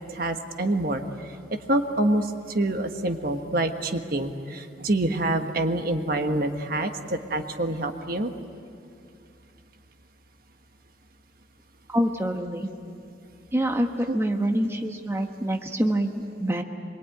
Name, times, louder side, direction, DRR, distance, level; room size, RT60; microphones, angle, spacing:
voice 1, 0.1-1.0 1.7-8.3 14.1-14.2, right 1 dB, 50° right, 6 dB, 1.4 m, -26 dB
voice 2, 11.9-12.7 13.5-16.6, right 1 dB, 15° right, 3 dB, 1.2 m, -26 dB
25.5 x 23.0 x 9.2 m, 2.4 s
head